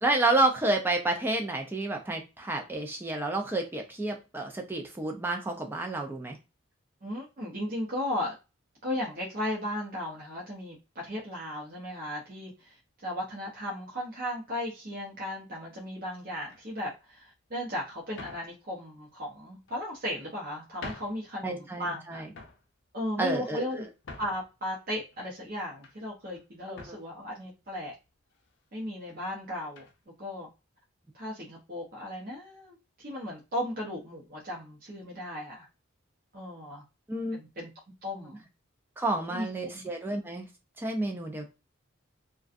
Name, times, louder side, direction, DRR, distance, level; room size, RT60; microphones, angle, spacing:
voice 1, 0.0-6.4 21.4-22.3 23.2-23.8 26.9-27.0 37.1-37.4 39.0-40.5 40.8-41.5, right 2 dB, 10° right, 2 dB, 0.3 m, -30 dB
voice 2, 7.0-8.3 8.8-12.7 13.0-22.2 22.9-23.9 24.2-27.9 28.7-29.9 30.2-30.5 31.1-35.7 36.3-36.8 37.3-37.7 38.0-38.4 39.3-39.5 39.7-39.8, left 1 dB, 45° right, -4 dB, 0.6 m, -36 dB
sound 1, 16.4-16.8 17.5-17.6 18.1-18.5 19.5-20.1 20.5-20.6 20.8-21.2 21.6-22.0 22.3-22.6 23.3-24.5 25.1-26.0 26.3-26.4 26.7-27.1 27.9-28.0 28.3-28.5 29.8-30.0, left 3 dB, 60° left, 0.5 m, -46 dB
2.4 x 2.2 x 2.4 m, 0.28 s
head